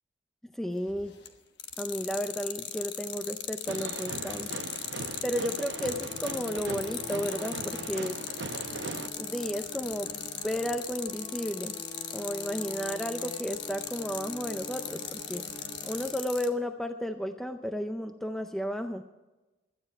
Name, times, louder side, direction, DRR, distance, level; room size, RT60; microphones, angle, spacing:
voice 1, 0.5-1.2 1.8-4.5 5.2-8.2 9.2-11.8 12.1-15.4 15.8-19.0, equal, ahead, 7 dB, 0.5 m, -33 dB
sound 1, 0.9-1.3 1.6-16.5, left 10 dB, 60° left, 1.2 m, -37 dB
sound 2, 3.7-9.1, right 3 dB, 70° right, 0.8 m, -39 dB
sound 3, 5.2-16.7, left 1 dB, 30° left, 1.6 m, -46 dB
16.5 x 12.5 x 4.5 m, 1.1 s
head